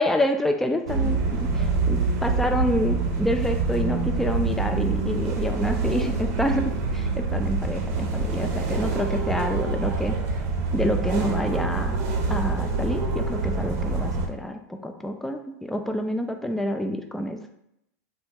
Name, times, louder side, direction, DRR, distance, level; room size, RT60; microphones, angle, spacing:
voice 1, 0.0-10.2 10.7-12.0 12.3-17.5, left 1 dB, 5° left, 5 dB, 0.3 m, -27 dB
sound 1, 0.9-14.3, right 4 dB, 60° right, 0.6 m, -26 dB
3.0 x 2.2 x 3.3 m, 0.79 s
hypercardioid pair, 120°, 9 cm